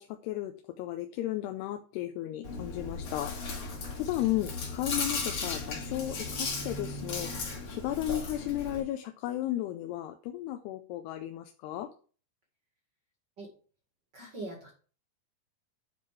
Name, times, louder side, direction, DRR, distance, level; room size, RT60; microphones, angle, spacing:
voice 1, 0.0-3.3 4.0-11.9, left 14 dB, 85° left, 6 dB, 2.7 m, -34 dB
Chewing mastication, 2.4-8.8, left 4 dB, 45° left, 2.8 m, -36 dB
voice 2, 14.1-14.7, right 2 dB, 40° right, 1 dB, 1.7 m, -41 dB
10.0 x 4.8 x 4.9 m, 0.40 s
omnidirectional pair, 4.7 m